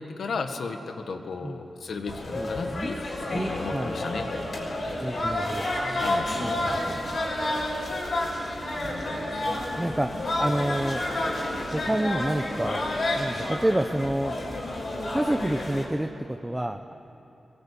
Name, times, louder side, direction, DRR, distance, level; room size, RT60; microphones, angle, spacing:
voice 1, 0.0-4.3 6.0-6.3, left 4 dB, 85° left, 6 dB, 1.7 m, -34 dB
sound 1, 2.1-15.8, left 1 dB, 60° left, 6.1 m, -30 dB
voice 2, 2.3-2.9 3.3-4.0 5.0-5.7 6.4-7.0 9.8-10.1 10.4-11.1 11.7-12.8 13.2-14.4 15.1-16.9, right 1 dB, 10° right, 6 dB, 0.8 m, -28 dB
22.5 x 22.0 x 8.4 m, 3.0 s
wide cardioid pair, 100°, 0 cm